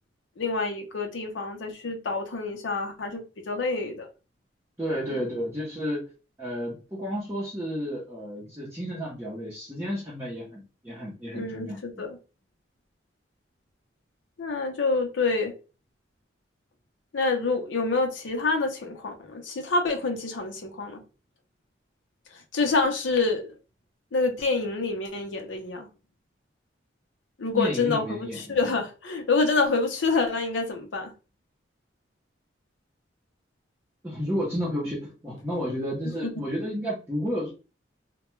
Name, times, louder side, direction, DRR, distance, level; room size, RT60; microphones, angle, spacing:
voice 1, 0.4-4.1 5.1-5.2 11.3-12.1 14.4-15.5 17.1-21.0 22.3-23.4 24.1-25.9 27.4-31.1 36.2-36.3, left 3 dB, 80° left, 0.6 m, -27 dB
voice 2, 4.8-6.1 6.4-12.1 27.5-28.6 34.0-37.5, equal, 10° right, 0.6 m, -32 dB
2.2 x 2.2 x 3.0 m
head